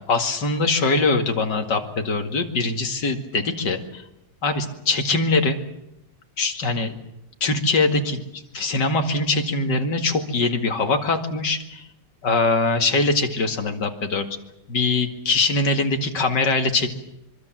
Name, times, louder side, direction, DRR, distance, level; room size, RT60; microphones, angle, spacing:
voice 1, 0.0-4.0 4.4-5.6 6.4-7.0 7.4-11.8 12.2-14.3 14.7-16.9, left 3 dB, 75° left, 6 dB, 2.8 m, -22 dB
25.0 x 24.0 x 7.5 m, 0.84 s
omnidirectional pair, 1.9 m